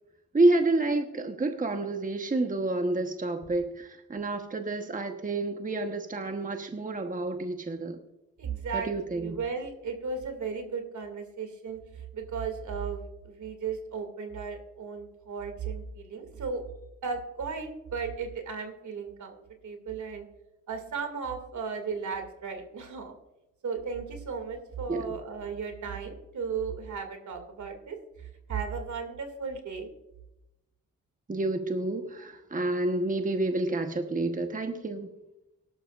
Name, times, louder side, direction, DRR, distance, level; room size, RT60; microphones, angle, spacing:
voice 1, 0.3-8.0 8.7-9.4 24.9-25.1 31.3-35.1, right 2 dB, 25° right, 5 dB, 1.2 m, -29 dB
voice 2, 8.4-16.6 17.0-20.3 20.7-23.1 23.6-28.0 28.5-29.9, right 5 dB, 70° right, 5 dB, 2.5 m, -35 dB
18.0 x 12.0 x 2.5 m, 0.93 s
cardioid pair, 75°, 31 cm